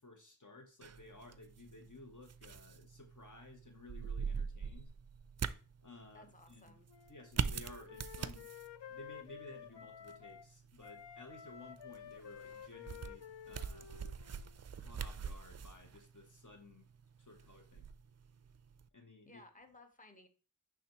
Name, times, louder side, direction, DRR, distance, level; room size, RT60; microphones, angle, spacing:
voice 1, 0.0-4.9 5.8-6.8 7.1-8.5 8.9-13.9 14.8-16.9 17.2-17.9 18.9-19.4, left 2 dB, 45° left, 4 dB, 0.9 m, -56 dB
sound 1, 0.8-18.9, right 6 dB, 40° right, 0.4 m, -44 dB
voice 2, 6.1-6.9 19.3-20.3, left 2 dB, 20° left, 5 dB, 1.0 m, -59 dB
Wind instrument woodwind instrument, 6.9-10.5 10.8-14.6, left 8 dB, 85° left, 0.5 m, -52 dB
10.0 x 3.5 x 2.9 m, 0.37 s
wide cardioid pair, 45°, 42 cm